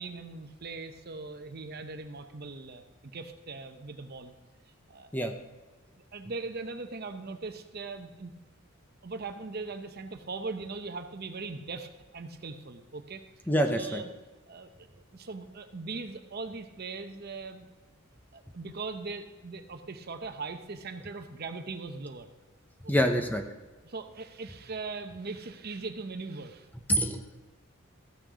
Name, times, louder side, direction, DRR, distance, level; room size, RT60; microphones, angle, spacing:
voice 1, 0.0-4.3 4.9-5.1 6.1-8.3 9.0-13.2 13.7-14.1 14.5-14.9 15.1-17.7 18.3-22.3 22.8-23.1 23.8-26.7, right 3 dB, 45° right, 8 dB, 0.7 m, -40 dB
voice 2, 13.5-14.0 22.9-23.4 26.9-27.2, equal, 10° left, 5 dB, 0.7 m, -26 dB
14.5 x 6.4 x 5.0 m, 1.2 s
head